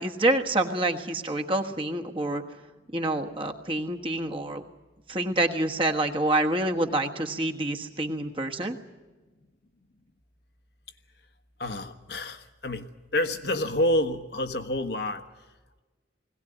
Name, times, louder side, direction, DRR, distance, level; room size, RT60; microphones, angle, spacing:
voice 1, 0.0-2.4 2.9-4.6 5.1-8.8, right 2 dB, 30° right, 3 dB, 1.4 m, -27 dB
voice 2, 11.6-15.3, left 1 dB, 60° left, 7 dB, 1.3 m, -28 dB
21.0 x 17.5 x 9.8 m, 1.2 s
head